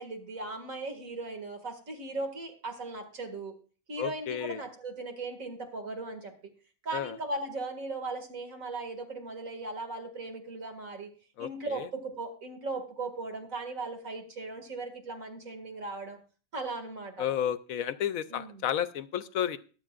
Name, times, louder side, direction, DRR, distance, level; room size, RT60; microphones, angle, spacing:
voice 1, 0.0-3.5 3.9-6.3 6.8-11.1 11.4-16.2 16.5-17.2 18.3-18.6, right 3 dB, 75° right, 5 dB, 2.5 m, -38 dB
voice 2, 4.0-4.6 6.9-7.2 11.4-11.9 17.2-19.6, left 10 dB, 80° left, 13 dB, 1.1 m, -32 dB
22.5 x 7.9 x 2.4 m, 0.38 s
omnidirectional pair, 1.4 m